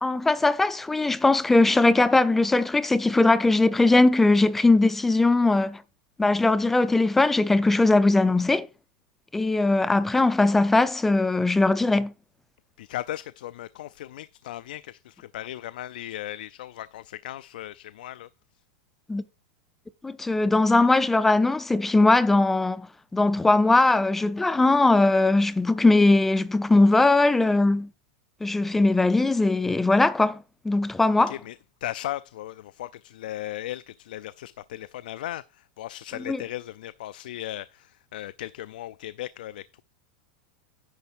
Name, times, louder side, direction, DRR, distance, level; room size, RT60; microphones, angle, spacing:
voice 1, 0.0-5.8 6.2-8.7 9.3-12.1 19.1-19.2 20.0-22.9 23.1-27.9 28.4-31.3 36.3-36.4, left 2 dB, 5° left, 0.3 m, -20 dB
voice 2, 12.8-18.3 31.3-31.6 31.8-39.8, left 13 dB, 85° left, 0.4 m, -37 dB
10.0 x 3.4 x 7.1 m
supercardioid pair, 175°, 5 cm